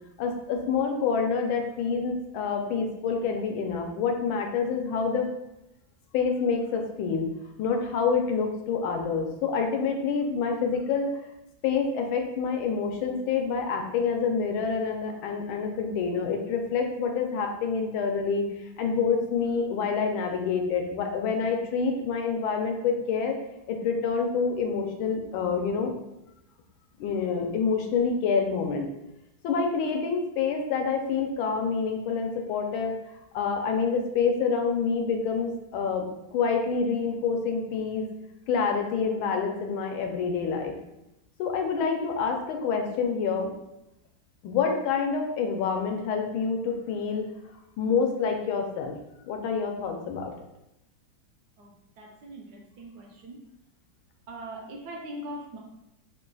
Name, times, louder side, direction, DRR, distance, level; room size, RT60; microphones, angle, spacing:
voice 1, 0.2-5.3 6.1-7.3 7.6-11.1 11.6-23.4 23.7-25.9 27.0-28.9 29.4-38.1 38.5-40.7 41.4-43.5 44.4-47.3 47.8-48.9 49.3-50.3, left 5 dB, 90° left, 4 dB, 1.4 m, -27 dB
voice 2, 52.0-53.4 54.3-55.6, right 1 dB, 70° right, -1 dB, 1.0 m, -41 dB
3.5 x 2.3 x 3.8 m, 0.88 s
omnidirectional pair, 2.1 m